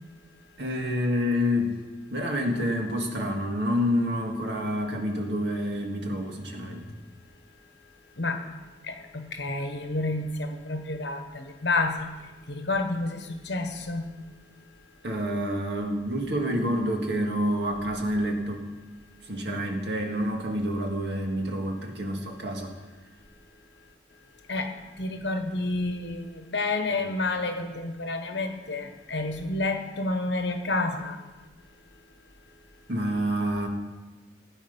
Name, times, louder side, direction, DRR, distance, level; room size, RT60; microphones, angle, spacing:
voice 1, 0.6-1.8 2.1-6.9 15.0-18.7 19.2-22.7 32.9-33.7, equal, 60° right, 2 dB, 2.0 m, -28 dB
voice 2, 8.9-12.1 12.5-14.1 24.5-24.7 25.0-31.2, left 2 dB, 60° left, 7 dB, 1.3 m, -29 dB
16.5 x 9.1 x 5.5 m, 1.2 s
head